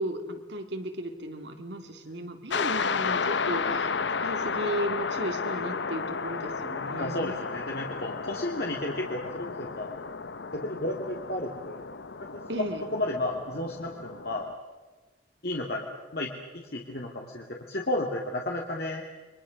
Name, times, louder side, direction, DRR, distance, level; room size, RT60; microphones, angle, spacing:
voice 1, 0.0-7.4 12.5-12.8, right 1 dB, 75° right, 5 dB, 2.8 m, -35 dB
sound 1, 2.5-14.5, left 5 dB, 80° left, 0.9 m, -33 dB
voice 2, 7.0-9.9 10.5-11.8 12.3-12.7 12.9-14.5 15.4-15.9 16.1-19.0, left 1 dB, 55° left, -1 dB, 2.4 m, -32 dB
29.5 x 23.5 x 6.4 m, 1.2 s
head